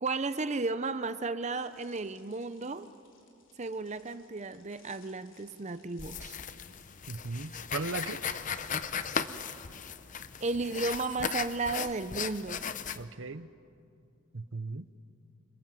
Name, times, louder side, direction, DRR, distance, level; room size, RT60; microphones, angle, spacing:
voice 1, 0.0-2.9 3.6-6.4 10.4-12.6, right 3 dB, 35° right, 13 dB, 0.7 m, -34 dB
sound 1, 1.5-11.2, left 5 dB, 70° left, 4.1 m, -59 dB
sound 2, 6.0-13.0, left 7 dB, 40° left, 0.7 m, -37 dB
voice 2, 7.1-8.2 12.9-13.5 14.3-14.8, right 3 dB, 70° right, 14 dB, 0.9 m, -37 dB
28.0 x 25.5 x 7.7 m, 2.5 s
head